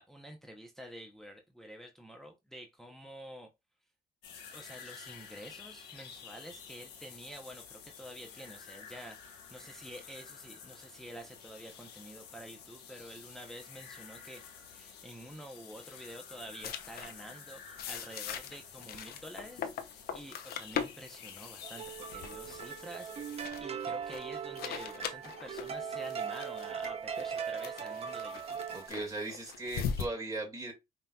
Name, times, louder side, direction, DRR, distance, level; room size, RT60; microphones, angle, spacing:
voice 1, 0.0-3.5 4.5-28.6, equal, ahead, 0.7 m, -49 dB
sound 1, 4.2-23.5, left 7 dB, 85° left, 1.2 m, -51 dB
sound 2, 16.6-17.1 17.8-30.1, left 7 dB, 65° left, 0.7 m, -41 dB
sound 3, 21.6-28.9, right 7 dB, 35° right, 0.7 m, -39 dB
voice 2, 28.7-30.7, right 2 dB, 20° right, 1.9 m, -38 dB
5.5 x 2.8 x 2.3 m
cardioid pair, 110°, 17 cm